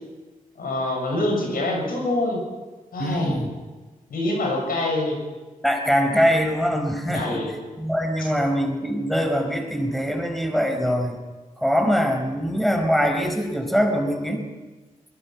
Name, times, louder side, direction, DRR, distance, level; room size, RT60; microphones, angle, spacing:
voice 1, 0.6-2.4 2.9-3.4 4.1-5.2 7.1-7.5, left 1 dB, 80° left, 1 dB, 7.0 m, -25 dB
voice 2, 3.0-3.5 5.6-7.4 7.8-11.2 11.6-14.5, equal, ahead, 4 dB, 4.6 m, -23 dB
22.0 x 21.5 x 6.0 m, 1.3 s
cardioid pair, 55°, 15 cm